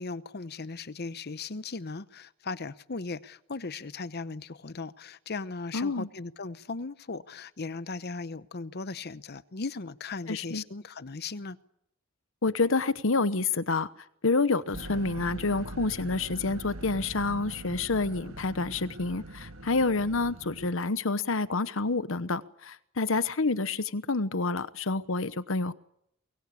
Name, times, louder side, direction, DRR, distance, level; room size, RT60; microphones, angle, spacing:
voice 1, 0.0-11.6, left 3 dB, 50° left, 0.9 m, -37 dB
voice 2, 5.7-6.1 10.3-10.6 12.4-13.9 14.2-25.7, left 3 dB, 70° left, 1.0 m, -28 dB
sound 1, 14.7-20.7, right 1 dB, 85° right, 1.7 m, -42 dB
23.5 x 22.0 x 8.4 m
head